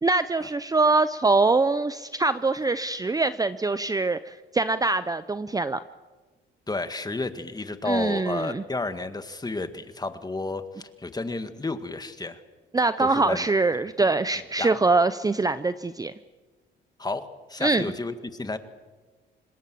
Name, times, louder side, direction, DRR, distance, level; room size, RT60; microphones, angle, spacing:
voice 1, 0.0-5.8 7.9-8.6 12.7-16.1 17.6-17.9, right 3 dB, 20° right, 13 dB, 0.7 m, -23 dB
voice 2, 6.7-12.4 13.0-13.5 13.7-13.9 14.6-14.7 17.0-18.6, left 3 dB, 20° left, 9 dB, 1.9 m, -32 dB
26.5 x 20.5 x 7.7 m, 1.3 s
cardioid pair, 90°, 20 cm